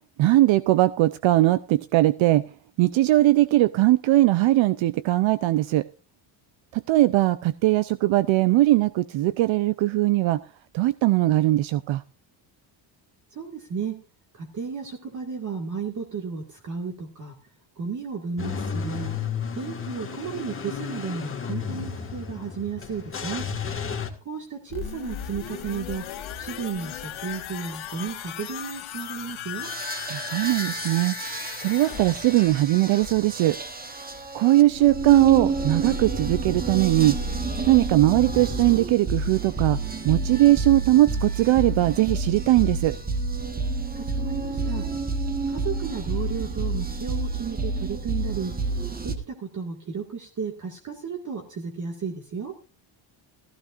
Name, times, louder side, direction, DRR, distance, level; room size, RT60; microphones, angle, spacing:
voice 1, 0.2-2.4 2.8-5.9 6.7-10.4 10.7-12.0 30.1-31.1 31.6-33.6 34.3-37.2 37.7-39.8 40.0-42.9, right 16 dB, 70° right, 14 dB, 0.6 m, -20 dB
voice 2, 13.3-13.9 14.4-17.3 17.8-19.1 19.6-23.5 24.3-26.0 26.4-29.7 44.0-44.8 45.5-48.5 49.0-52.5, right 6 dB, 35° right, 2 dB, 2.0 m, -33 dB
Car / Engine starting / Idling, 18.4-24.1, left 6 dB, 25° left, 2.0 m, -32 dB
sound 1, 24.7-34.4 34.7-34.8, left 10 dB, 70° left, 2.6 m, -37 dB
sound 2, 29.6-49.2, right 3 dB, 20° right, 1.3 m, -30 dB
15.5 x 15.0 x 2.5 m, 0.33 s
cardioid pair, 145°, 49 cm